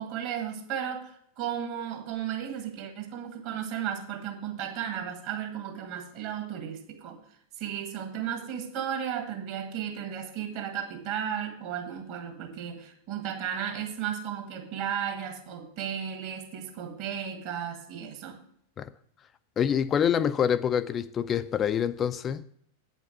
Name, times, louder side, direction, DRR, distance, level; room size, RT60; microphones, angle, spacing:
voice 1, 0.0-7.2 7.6-18.4, right 9 dB, 45° right, 1.6 m, -34 dB
voice 2, 19.6-22.4, left 8 dB, 25° left, 0.3 m, -26 dB
8.8 x 5.3 x 6.6 m
figure-of-eight pair, 90°, 0 cm